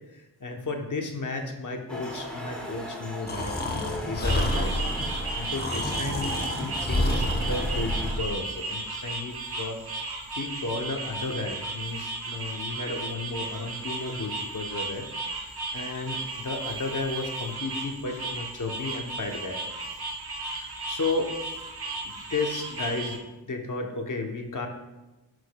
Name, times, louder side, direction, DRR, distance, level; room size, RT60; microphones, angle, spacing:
voice 1, 0.1-4.8 5.3-9.8 10.4-15.1 15.7-19.6 20.5-21.3 22.0-24.7, left 3 dB, 50° left, 4 dB, 0.9 m, -33 dB
sound 1, 1.9-8.3, equal, 5° left, 1.5 m, -38 dB
Breathing, 3.3-8.4, left 1 dB, 25° left, 0.9 m, -29 dB
sound 2, 4.2-23.2, right 3 dB, 65° right, 1.1 m, -35 dB
9.5 x 6.1 x 2.3 m, 1.1 s
wide cardioid pair, 100°, 39 cm